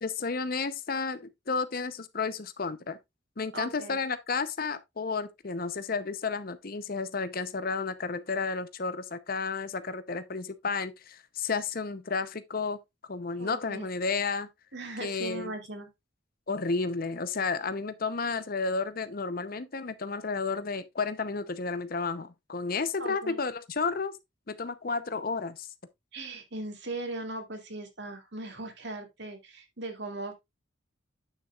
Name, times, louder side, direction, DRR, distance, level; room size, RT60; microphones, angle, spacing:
voice 1, 0.0-3.0 3.4-12.8 13.1-14.5 15.0-15.5 16.5-24.2 24.5-25.7, left 4 dB, 45° left, 0.7 m, -32 dB
voice 2, 3.5-4.0 13.4-13.9 14.7-15.9 23.0-23.4 26.1-30.3, right 2 dB, 60° right, 2.3 m, -39 dB
9.0 x 7.2 x 2.4 m
head